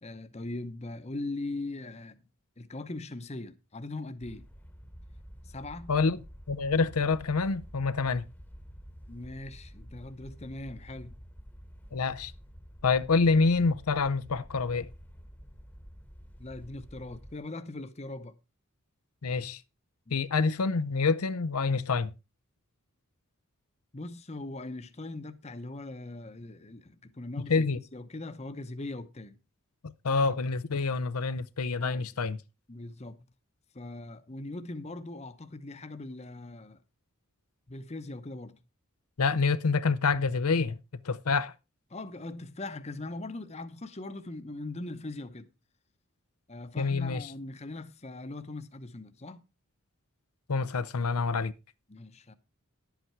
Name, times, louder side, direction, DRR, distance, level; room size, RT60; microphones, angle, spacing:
voice 1, 0.0-2.3 2.6-4.5 5.4-5.9 9.1-11.2 16.4-18.4 20.1-20.2 23.9-27.7 27.9-29.4 31.8-32.1 32.7-33.2 33.7-36.8 37.7-38.6 41.9-45.5 46.5-49.4 51.9-52.3, left 2 dB, 30° left, 0.8 m, -40 dB
sound 1, 4.2-17.4, equal, 5° left, 1.1 m, -49 dB
voice 2, 5.9-6.2 6.5-8.3 11.9-12.3 12.8-14.9 19.2-19.6 20.1-22.1 27.5-27.8 29.8-32.4 39.2-40.8 41.0-41.5 46.8-47.3 50.5-51.5, left 4 dB, 90° left, 0.7 m, -27 dB
11.0 x 8.3 x 4.5 m
head